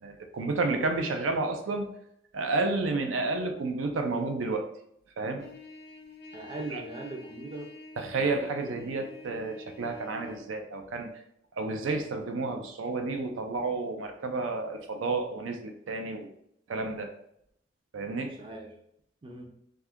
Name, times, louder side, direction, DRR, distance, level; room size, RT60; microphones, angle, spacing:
voice 1, 0.0-1.9 2.3-4.7 5.2-5.4 6.7-6.8 8.0-11.1 11.6-16.3 16.7-17.1 17.9-18.3, right 3 dB, 90° right, 5 dB, 0.4 m, -31 dB
Trumpet, 5.4-10.4, left 1 dB, 55° left, 0.4 m, -48 dB
voice 2, 6.3-7.7 18.4-18.7 19.2-19.5, right 2 dB, 25° right, 2 dB, 0.4 m, -39 dB
2.6 x 2.3 x 3.5 m, 0.74 s
head